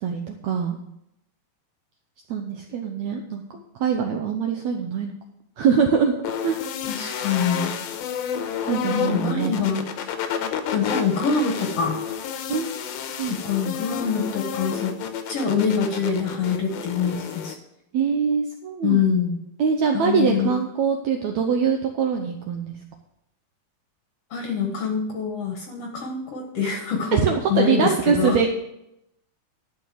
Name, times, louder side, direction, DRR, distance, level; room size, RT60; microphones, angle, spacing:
voice 1, 0.0-0.8 2.3-5.1 5.6-6.1 6.4-6.6 8.7-9.6 12.5-12.8 13.1-13.4 17.9-19.0 19.6-22.7 27.1-28.5, right 6 dB, 80° right, 3 dB, 1.6 m, -23 dB
sound 1, 6.2-17.6, left 8 dB, 90° left, 2.7 m, -30 dB
voice 2, 6.9-7.8 8.9-10.1 10.7-12.0 13.3-15.0 15.3-17.6 18.8-19.4 19.9-20.5 24.3-28.4, left 6 dB, 55° left, 2 dB, 1.8 m, -25 dB
12.5 x 5.2 x 7.7 m, 0.82 s
omnidirectional pair, 4.3 m